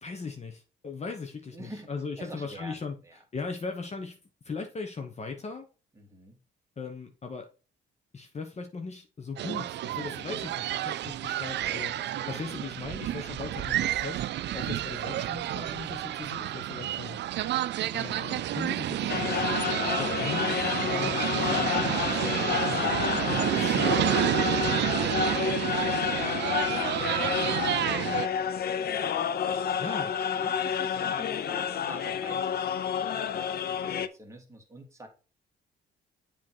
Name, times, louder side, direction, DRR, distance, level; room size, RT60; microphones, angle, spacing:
voice 1, 0.0-3.0 3.3-4.2 4.4-5.7 6.8-7.5 8.1-14.3 14.5-17.2 17.9-19.7 20.0-24.4 29.8-30.1, left 4 dB, 35° left, 1.0 m, -38 dB
voice 2, 1.5-1.9 2.2-3.2 6.0-6.4 12.0-12.6 12.9-13.2 28.4-28.5 28.9-29.8 30.0-30.1 30.4-35.1, right 1 dB, 15° right, 2.0 m, -48 dB
sound 1, 9.4-28.3, right 13 dB, 60° right, 0.4 m, -30 dB
sound 2, 19.1-34.1, left 8 dB, 50° left, 0.6 m, -29 dB
7.5 x 3.7 x 4.5 m
cardioid pair, 90°, 20 cm